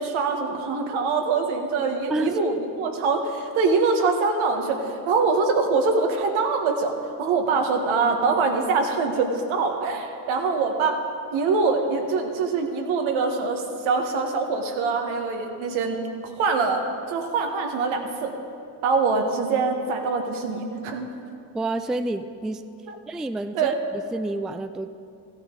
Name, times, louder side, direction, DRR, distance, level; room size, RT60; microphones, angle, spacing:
voice 1, 0.0-6.9 7.2-11.0 11.3-18.3 18.8-21.1 22.9-23.0 23.5-23.7, right 4 dB, 80° right, 4 dB, 1.2 m, -24 dB
voice 2, 21.5-22.6 23.1-24.9, right 2 dB, ahead, 10 dB, 0.3 m, -29 dB
15.0 x 8.8 x 3.7 m, 2.6 s
hypercardioid pair, 50°, 48 cm